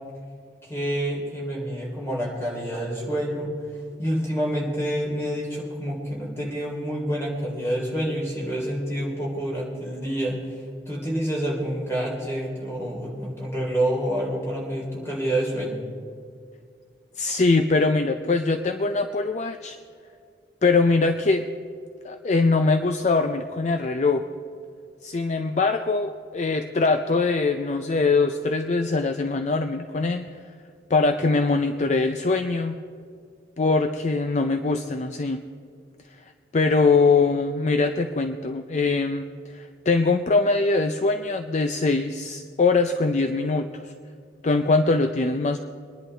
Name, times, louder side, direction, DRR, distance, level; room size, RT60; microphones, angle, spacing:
voice 1, 0.6-3.5 4.0-10.4 10.9-15.8, right 1 dB, 15° left, -4 dB, 3.3 m, -28 dB
voice 2, 17.1-19.8 20.6-21.5 22.0-24.2 25.0-30.3 30.9-32.8 33.6-35.4 36.1-43.9 44.4-45.6, left 3 dB, 40° left, 7 dB, 0.5 m, -22 dB
23.0 x 10.5 x 3.3 m, 2.2 s
head